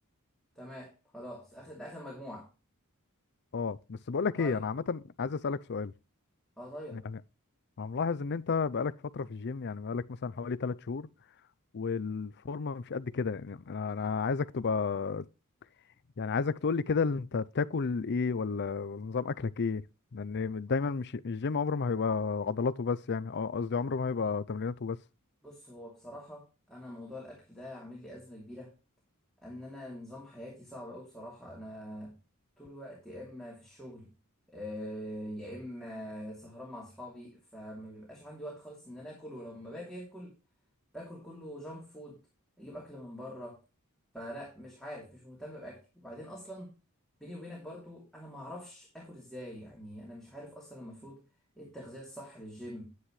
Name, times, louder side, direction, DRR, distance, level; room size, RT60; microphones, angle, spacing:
voice 1, 0.6-2.5 4.4-4.6 6.6-7.0 25.4-28.7 29.4-32.1 32.6-34.1 34.5-40.3 40.9-42.2 42.6-43.6 44.1-46.7 47.2-51.2 51.6-52.9, equal, ahead, 2.8 m, -44 dB
voice 2, 3.5-5.9 6.9-7.2 7.8-11.1 11.7-15.2 16.2-19.8 20.1-25.0, left 5 dB, 50° left, 0.5 m, -32 dB
10.0 x 9.5 x 3.2 m
head